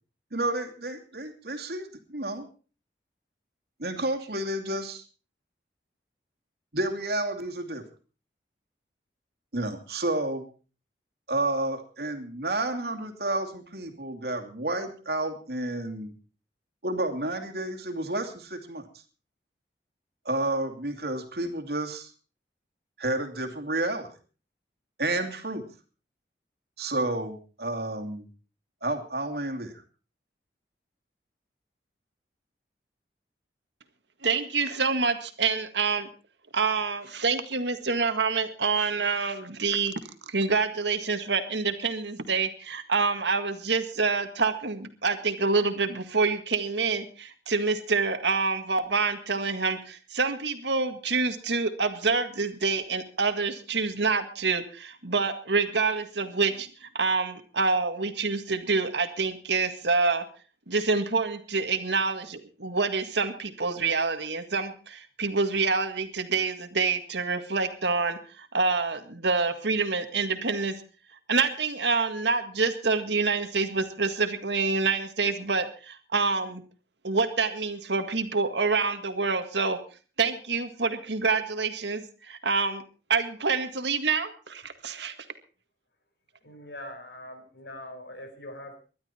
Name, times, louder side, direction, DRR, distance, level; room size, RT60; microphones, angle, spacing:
voice 1, 0.3-2.5 3.8-5.0 6.7-7.8 9.5-10.5 11.3-16.1 16.8-18.8 20.2-22.1 23.0-24.1 25.0-25.6 26.8-28.3 28.8-29.7, right 2 dB, 65° right, 4 dB, 2.6 m, -30 dB
voice 2, 34.2-36.1 36.5-39.9 40.3-60.2 60.7-70.7 71.3-76.6 77.0-79.8 80.2-82.8 83.1-85.1, right 4 dB, 85° right, 8 dB, 1.9 m, -27 dB
voice 3, 86.4-88.8, left 1 dB, 80° left, 6 dB, 4.7 m, -42 dB
20.0 x 12.0 x 4.4 m, 0.37 s
head